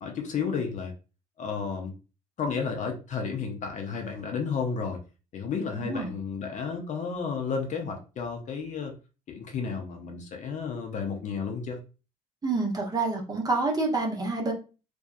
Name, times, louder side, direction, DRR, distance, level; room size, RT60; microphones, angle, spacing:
voice 1, 0.0-0.9 1.4-1.9 2.4-5.0 5.3-8.9 9.3-11.8, left 5 dB, 40° left, 2 dB, 0.6 m, -32 dB
voice 2, 5.7-6.1 12.4-14.5, right 3 dB, 20° right, 0 dB, 0.9 m, -28 dB
2.8 x 2.2 x 2.4 m, 0.33 s
figure-of-eight pair, 55°, 19 cm